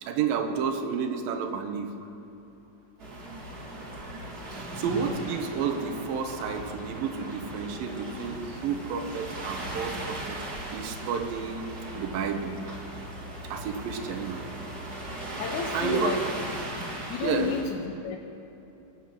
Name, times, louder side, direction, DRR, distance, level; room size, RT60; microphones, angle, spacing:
voice 1, 0.0-1.9 4.5-11.7 12.0-12.5 13.5-14.4 15.7-16.1 17.2-17.6, right 6 dB, 80° right, 6 dB, 2.6 m, -31 dB
sound 1, 3.0-17.6, right 1 dB, 40° right, 1.6 m, -38 dB
voice 2, 15.4-16.2 17.1-17.8 18.0-18.2, left 7 dB, 75° left, 4 dB, 1.9 m, -31 dB
19.5 x 7.4 x 6.0 m, 2.9 s
omnidirectional pair, 4.0 m